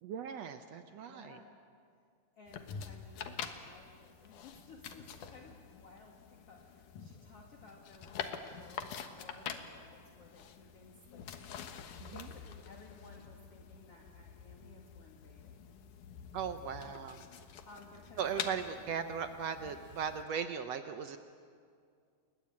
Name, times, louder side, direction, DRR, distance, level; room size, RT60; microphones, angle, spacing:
voice 1, 0.0-1.4 12.0-12.3 16.3-17.2 18.2-21.2, right 7 dB, 80° right, 8 dB, 1.5 m, -38 dB
voice 2, 1.0-1.5 2.4-15.8 16.8-17.1 17.4-18.2 18.5-18.8, left 3 dB, 45° left, 0 dB, 2.7 m, -57 dB
sound 1, 2.5-20.2, left 7 dB, 65° left, 2.7 m, -47 dB
29.5 x 22.0 x 8.7 m, 2.3 s
omnidirectional pair, 4.1 m